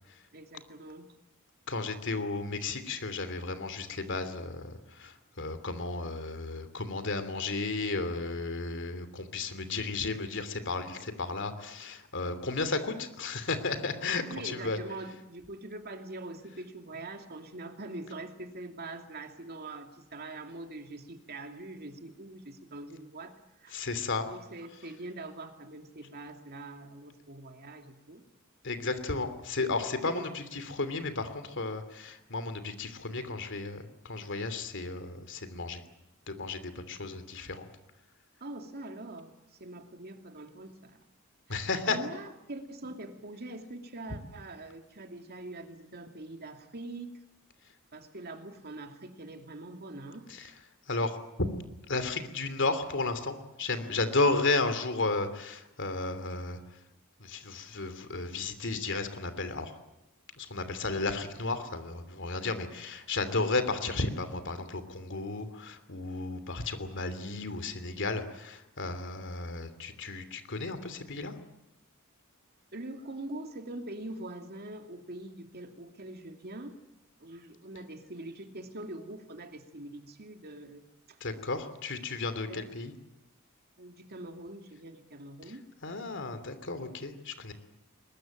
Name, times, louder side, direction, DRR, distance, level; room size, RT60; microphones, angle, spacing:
voice 1, 0.3-1.1 14.3-23.8 24.3-28.2 30.0-30.3 38.4-41.0 41.5-47.1 47.9-50.3 72.7-76.8 77.2-80.8 81.1-81.2 82.4-82.7 83.8-85.7, right 2 dB, 50° right, 5 dB, 2.6 m, -43 dB
voice 2, 1.7-14.8 23.7-24.3 28.6-35.8 36.3-37.7 41.5-42.0 50.9-51.2 51.9-56.6 57.2-59.7 60.4-71.3 81.2-82.9 85.8-87.5, left 3 dB, 60° left, 10 dB, 2.9 m, -33 dB
22.5 x 21.0 x 9.2 m, 0.90 s
head